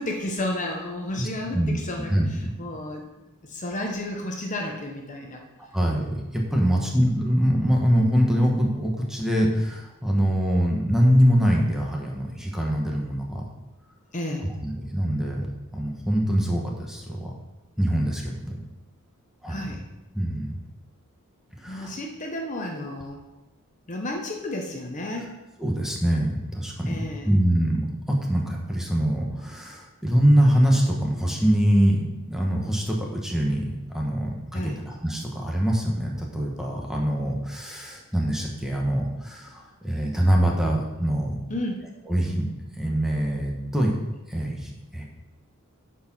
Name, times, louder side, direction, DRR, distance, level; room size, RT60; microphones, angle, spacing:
voice 1, 0.0-3.1 3.4-5.4 6.5-6.8 14.1-14.5 19.5-19.8 21.7-23.2 23.9-25.4 26.8-27.3 34.5-34.8 41.5-41.8, left 1 dB, 35° left, 1 dB, 0.9 m, -32 dB
voice 2, 1.1-1.8 2.1-2.5 5.7-13.4 14.6-17.3 17.8-18.6 19.4-19.7 20.1-20.6 21.6-21.9 25.6-41.3 42.1-42.5 42.7-43.9 44.3-45.1, equal, ahead, -1 dB, 1.3 m, -24 dB
9.3 x 4.7 x 6.1 m, 1.0 s
head